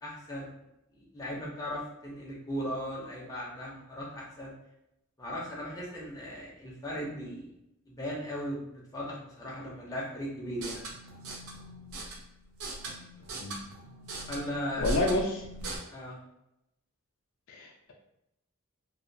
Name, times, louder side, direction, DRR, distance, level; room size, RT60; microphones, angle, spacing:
voice 1, 0.0-0.6 0.9-4.5 5.2-7.5 7.9-10.8 14.3-15.1 15.9-16.2, equal, 15° left, -5 dB, 0.6 m, -37 dB
sound 1, 10.5-15.8, right 1 dB, 75° right, 0.5 m, -40 dB
voice 2, 14.8-15.5 17.5-17.9, left 2 dB, 65° left, 0 dB, 0.4 m, -29 dB
2.3 x 2.2 x 2.6 m, 0.85 s
head